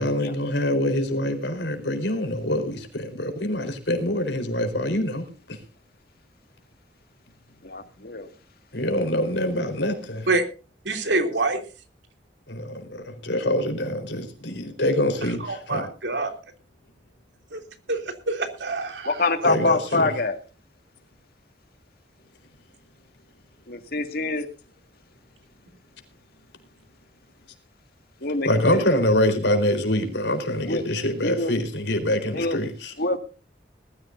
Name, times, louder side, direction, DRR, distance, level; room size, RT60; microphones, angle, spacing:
voice 1, 0.0-5.6 8.7-10.3 12.5-15.9 19.4-20.1 28.4-32.9, left 1 dB, 75° left, 4.3 m, -25 dB
voice 2, 7.6-8.3 19.0-20.4 23.7-24.5 28.2-28.8 30.7-30.8 31.2-31.6 32.3-32.6 33.0-33.2, left 3 dB, 55° left, 2.2 m, -25 dB
voice 3, 10.8-11.6 15.5-16.3 17.5-17.6 17.9-18.0 18.3-19.1, right 3 dB, 75° right, 3.1 m, -25 dB
20.5 x 14.5 x 2.7 m
head